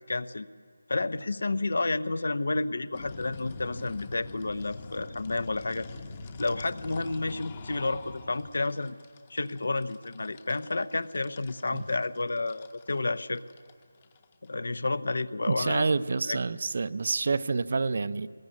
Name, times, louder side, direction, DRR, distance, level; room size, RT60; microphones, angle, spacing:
voice 1, 0.1-0.5 0.9-5.9 6.4-9.0 9.3-13.4 14.4-15.9 16.3-16.4, left 3 dB, 65° left, 16 dB, 0.9 m, -30 dB
sound 1, 2.9-14.5, left 3 dB, 20° left, 1.0 m, -44 dB
voice 2, 15.5-18.3, right 4 dB, 45° right, 15 dB, 0.6 m, -28 dB
23.0 x 20.5 x 9.6 m, 2.1 s
figure-of-eight pair, 175°, 0 cm